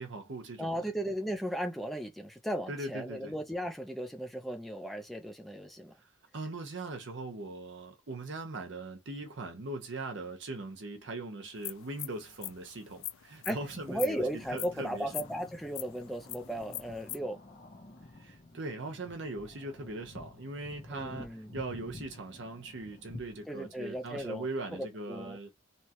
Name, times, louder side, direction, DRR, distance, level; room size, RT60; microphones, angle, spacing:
voice 1, 0.0-0.8 2.7-3.3 6.0-14.2 14.5-15.1 18.1-25.5, right 2 dB, 60° right, 0.8 m, -40 dB
voice 2, 0.6-5.9 13.5-13.6 13.9-17.4 20.9-21.5 23.5-24.5 24.7-25.4, right 1 dB, ahead, 0.5 m, -36 dB
sound 1, 11.6-17.2, left 15 dB, 80° left, 0.4 m, -42 dB
sound 2, 13.4-24.4, left 2 dB, 40° left, 0.7 m, -51 dB
2.9 x 2.3 x 2.8 m
head